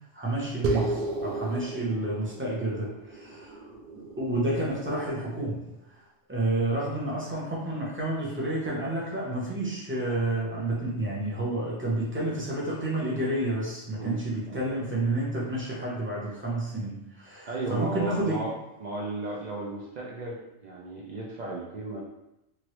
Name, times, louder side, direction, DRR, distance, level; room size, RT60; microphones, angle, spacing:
voice 1, 0.1-3.6 4.2-5.6 6.3-18.4, right 1 dB, 15° right, -5 dB, 0.6 m, -30 dB
sound 1, 0.6-5.4, right 2 dB, 55° right, 0.7 m, -34 dB
voice 2, 17.5-18.5 18.8-22.0, right 2 dB, 85° right, -3 dB, 0.3 m, -35 dB
3.1 x 2.6 x 2.9 m, 0.89 s
omnidirectional pair, 1.3 m